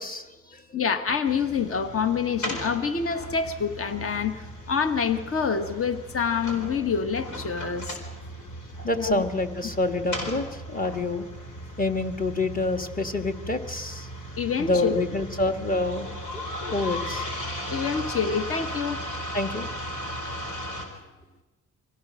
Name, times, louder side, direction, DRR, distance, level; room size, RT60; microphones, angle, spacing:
voice 1, 0.0-0.6 8.8-11.3 11.8-14.1 14.6-16.1 16.3-17.3 19.3-19.7, left 2 dB, 30° left, 6 dB, 1.8 m, -27 dB
voice 2, 0.7-8.0 9.0-9.2 14.4-14.9 17.7-19.0, left 6 dB, 45° left, 9 dB, 1.5 m, -27 dB
sound 1, 1.2-20.9, equal, 75° left, 4.5 m, -36 dB
25.5 x 17.0 x 6.4 m, 1.1 s
cardioid pair, 90°, 30 cm